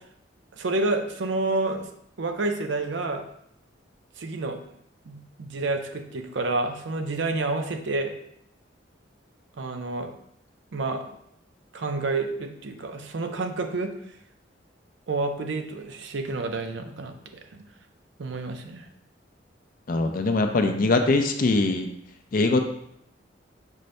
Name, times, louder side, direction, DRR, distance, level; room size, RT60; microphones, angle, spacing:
voice 1, 0.5-1.9 2.2-3.2 4.2-4.6 5.1-8.1 9.6-10.1 10.7-11.0 11.7-13.9 15.1-17.1 17.5-17.6 18.2-18.9, right 3 dB, 70° right, 6 dB, 0.5 m, -29 dB
voice 2, 19.9-21.9 22.3-22.6, left 3 dB, 45° left, 6 dB, 0.4 m, -22 dB
5.3 x 2.6 x 3.2 m, 0.73 s
head